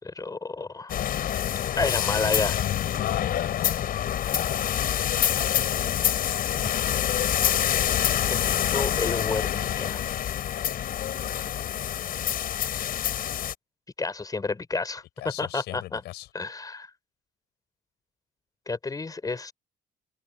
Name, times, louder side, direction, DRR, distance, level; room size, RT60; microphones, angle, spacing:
voice 1, 0.0-1.0 1.8-2.6 6.6-6.7 8.3-10.0 14.0-16.0 16.3-16.9 18.7-19.5, left 3 dB, 20° left, 4.5 m, -30 dB
sound 1, 0.9-13.5, left 10 dB, 60° left, 7.6 m, -26 dB
voice 2, 2.5-3.8 15.2-16.3, left 15 dB, 80° left, 6.1 m, -36 dB
cardioid pair, 110°, 17 cm